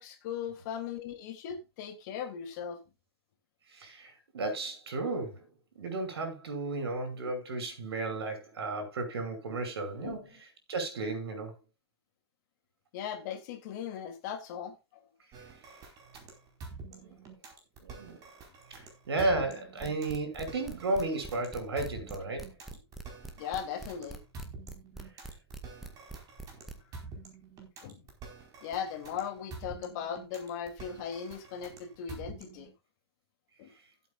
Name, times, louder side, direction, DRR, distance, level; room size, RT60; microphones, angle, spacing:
voice 1, 0.0-2.8 10.0-10.2 12.9-15.1 23.4-24.2 27.8-28.0 28.6-32.7 33.6-33.7, left 8 dB, 45° left, 2.8 m, -38 dB
voice 2, 3.7-5.5 5.8-10.2 10.7-11.5 17.0-17.1 17.8-18.2 18.7-22.5, right 2 dB, 70° right, 5.7 m, -33 dB
sound 1, 15.3-32.7, right 4 dB, 25° right, 4.5 m, -48 dB
sound 2, 19.8-26.7, right 2 dB, ahead, 1.6 m, -43 dB
16.5 x 8.4 x 2.5 m
hypercardioid pair, 125°, 14 cm